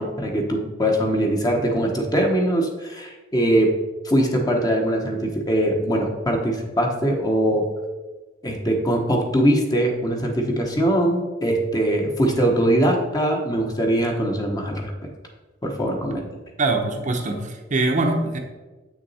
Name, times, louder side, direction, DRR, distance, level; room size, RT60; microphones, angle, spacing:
voice 1, 0.0-3.7 4.0-7.6 8.4-15.1 15.6-16.3, right 1 dB, 20° left, 1 dB, 1.1 m, -22 dB
voice 2, 16.6-18.4, right 2 dB, 40° right, 3 dB, 0.8 m, -23 dB
8.0 x 6.2 x 4.2 m, 1.2 s
head